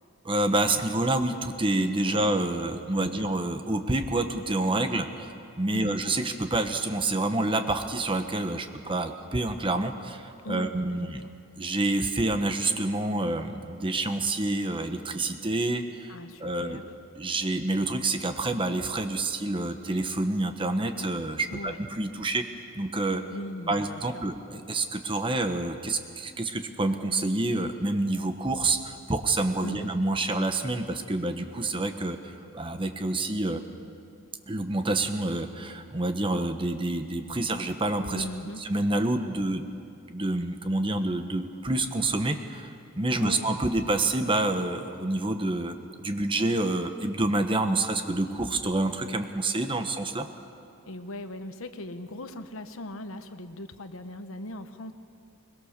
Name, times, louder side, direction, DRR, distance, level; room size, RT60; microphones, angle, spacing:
voice 1, 0.2-5.3 5.6-11.2 11.6-16.1 16.4-16.8 17.2-22.4 22.7-23.2 23.7-33.6 34.5-38.2 38.6-39.7 40.1-42.7 43.0-50.3, right 2 dB, 25° right, 7 dB, 1.1 m, -28 dB
voice 2, 3.0-3.3 5.7-6.0 10.4-11.1 16.1-16.9 21.5-21.8 23.3-24.2 29.6-29.9 38.1-38.6 43.2-43.5 50.8-54.9, left 1 dB, 75° left, 9 dB, 1.1 m, -39 dB
22.0 x 21.5 x 6.7 m, 2.6 s
head